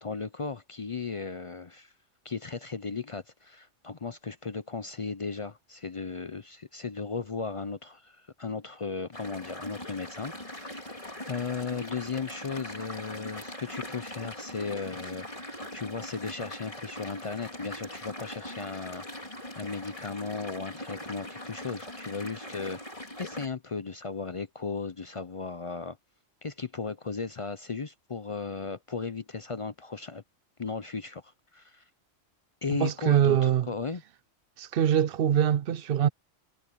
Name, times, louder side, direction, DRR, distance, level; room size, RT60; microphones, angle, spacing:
voice 1, 0.0-1.9 2.2-22.8 23.2-26.0 26.4-30.2 30.6-31.8 32.6-34.0, left 4 dB, 45° left, 0.4 m, -36 dB
sound 1, 9.1-23.5, left 1 dB, 25° left, 4.3 m, -41 dB
voice 2, 32.8-33.7 34.6-36.1, right 9 dB, 60° right, 0.7 m, -23 dB
omnidirectional pair, 1.3 m